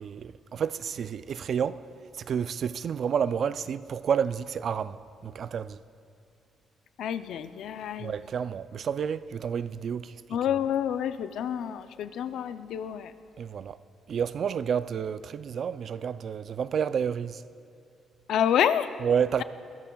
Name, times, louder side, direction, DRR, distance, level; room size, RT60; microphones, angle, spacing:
voice 1, 0.0-1.8 2.2-5.0 5.2-5.8 8.0-10.1 13.4-13.8 14.1-17.4 19.0-19.4, right 7 dB, 55° right, 0.3 m, -30 dB
voice 2, 7.0-8.1 10.3-13.1 18.3-18.9, left 9 dB, 80° left, 0.4 m, -28 dB
21.5 x 14.0 x 2.3 m
cardioid pair, 90°, 0 cm